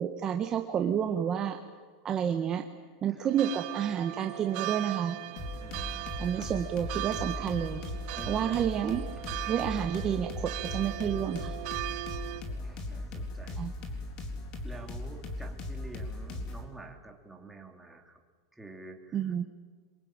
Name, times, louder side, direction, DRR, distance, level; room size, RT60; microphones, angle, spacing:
voice 1, 0.0-1.6 2.0-2.6 3.0-5.2 6.2-7.8 8.3-9.0 9.5-11.6 13.6-13.7 19.1-19.5, right 8 dB, 25° right, 5 dB, 1.4 m, -30 dB
sound 1, 3.3-12.4, right 17 dB, 45° right, 1.5 m, -39 dB
sound 2, 5.4-16.6, left 2 dB, 40° left, 4.1 m, -38 dB
voice 2, 5.6-6.5 8.1-8.6 9.1-9.4 12.5-13.7 14.3-18.2 18.5-19.5, right 2 dB, 5° right, 2 dB, 2.9 m, -49 dB
26.5 x 23.0 x 9.0 m, 1.5 s
supercardioid pair, 150°, 2 cm